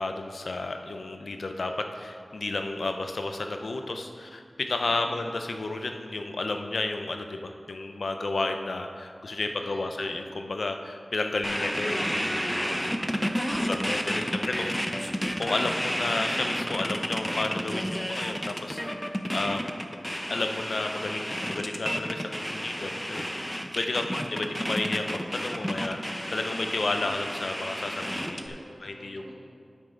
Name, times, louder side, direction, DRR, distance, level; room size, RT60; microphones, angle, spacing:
voice 1, 0.0-13.1 13.7-14.8 15.4-18.8 19.3-19.7 20.3-29.4, left 2 dB, 90° left, 5 dB, 0.6 m, -32 dB
voice 2, 4.9-5.2 9.4-10.0 12.7-14.8 23.9-24.6 26.7-27.2 28.2-29.4, right 1 dB, 85° right, -2 dB, 1.6 m, -49 dB
sound 1, 11.4-28.5, equal, 5° left, 0.7 m, -31 dB
9.1 x 9.0 x 3.9 m, 2.3 s
wide cardioid pair, 55°, 0 cm